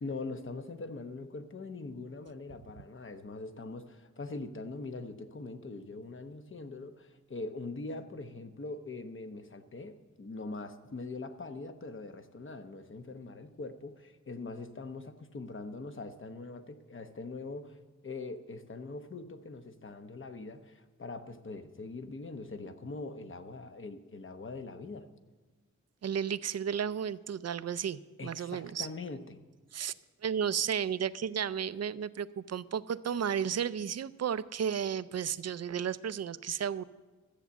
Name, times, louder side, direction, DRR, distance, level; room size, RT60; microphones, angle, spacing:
voice 1, 0.0-17.8 18.0-25.1 28.2-29.4, left 3 dB, 45° left, 8 dB, 0.9 m, -42 dB
voice 2, 26.0-28.9 29.7-29.9 30.2-36.9, right 8 dB, 60° right, 16 dB, 0.5 m, -33 dB
13.0 x 8.3 x 7.0 m, 1.2 s
wide cardioid pair, 95°, 29 cm